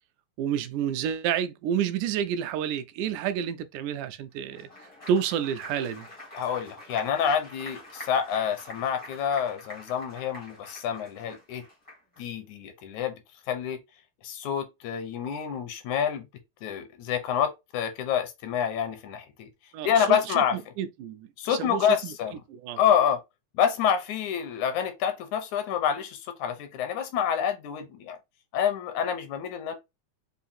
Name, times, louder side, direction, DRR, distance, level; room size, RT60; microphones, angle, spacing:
voice 1, 0.4-4.7 5.1-6.1 19.7-21.8 22.5-22.8, right 9 dB, 85° right, 2.0 m, -29 dB
Applause, 4.4-12.2, left 1 dB, 40° left, 0.4 m, -46 dB
voice 2, 6.3-11.6 12.2-13.2 13.5-13.8 14.2-16.3 16.6-19.5 19.8-20.6 21.4-22.4 22.8-23.2 23.5-28.2 28.5-29.8, left 8 dB, 80° left, 2.0 m, -27 dB
5.6 x 2.5 x 2.6 m
omnidirectional pair, 3.5 m